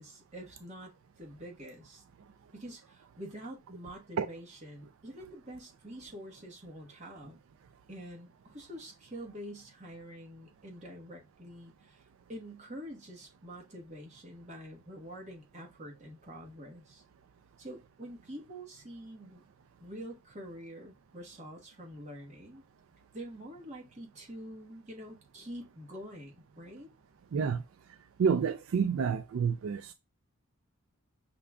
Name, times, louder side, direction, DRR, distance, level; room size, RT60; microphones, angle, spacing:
voice 1, 0.0-2.0 2.5-7.4 7.9-12.0 12.3-17.0 17.6-19.4 19.8-22.6 23.1-26.9, equal, 35° right, 1.2 m, -46 dB
voice 2, 27.3-27.6 28.2-29.9, right 6 dB, 75° right, 0.3 m, -29 dB
5.7 x 2.3 x 3.5 m
head